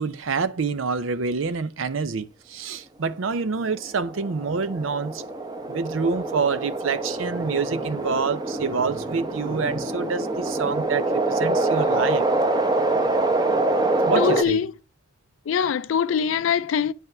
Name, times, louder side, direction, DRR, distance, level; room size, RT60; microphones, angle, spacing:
voice 1, 0.0-5.2 5.7-12.3 14.0-14.6, right 5 dB, 90° right, 0.6 m, -27 dB
sound 1, 3.6-14.4, right 2 dB, 20° right, 0.9 m, -25 dB
voice 2, 14.2-14.7 15.5-16.9, left 7 dB, 80° left, 0.4 m, -23 dB
9.1 x 5.6 x 5.9 m
head